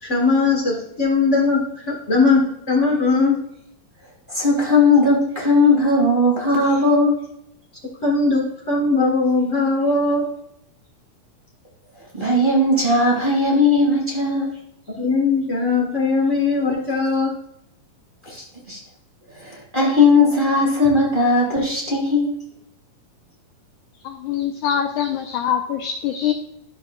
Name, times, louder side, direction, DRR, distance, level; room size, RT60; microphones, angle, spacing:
voice 1, 0.0-3.4 8.0-10.2 15.0-17.3, left 3 dB, 55° left, -3 dB, 0.8 m, -19 dB
voice 2, 4.3-7.2 12.1-14.5 18.2-18.8 19.4-22.3, left 2 dB, 20° right, -3 dB, 1.3 m, -18 dB
voice 3, 24.0-26.3, left 9 dB, 85° left, 3 dB, 1.8 m, -23 dB
12.5 x 5.7 x 2.4 m, 0.76 s
omnidirectional pair, 4.3 m